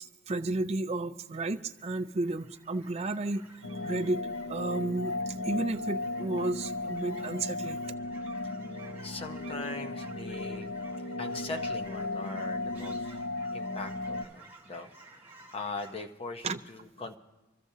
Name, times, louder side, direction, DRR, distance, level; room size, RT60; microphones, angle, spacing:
voice 1, 0.0-7.8 16.4-16.6, right 2 dB, 35° right, 9 dB, 0.5 m, -33 dB
Fowl / Chirp tweet, 1.2-15.9, right 2 dB, 10° right, 1.7 m, -54 dB
sound 1, 3.6-14.2, left 2 dB, 90° left, 0.7 m, -36 dB
voice 2, 9.0-10.7 11.2-13.2 13.5-15.2 15.5-17.2, left 3 dB, 30° left, 5 dB, 0.8 m, -41 dB
26.0 x 13.5 x 2.8 m, 1.1 s
head